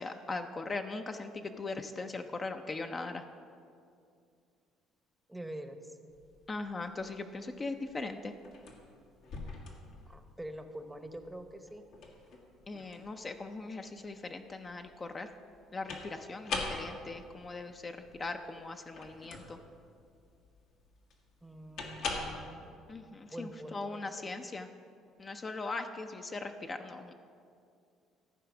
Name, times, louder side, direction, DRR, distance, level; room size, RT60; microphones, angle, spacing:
voice 1, 0.0-3.2 6.5-8.3 12.7-15.3 15.7-19.6 22.9-24.7 25.2-27.1, left 3 dB, 30° left, 6 dB, 0.5 m, -40 dB
voice 2, 5.3-6.0 10.1-11.8 21.4-22.7 23.3-24.3, right 1 dB, 10° right, 8 dB, 0.8 m, -45 dB
sound 1, 6.1-22.3, left 3 dB, 70° left, 1.5 m, -43 dB
13.5 x 4.7 x 6.0 m, 2.4 s
supercardioid pair, 85°, 0 cm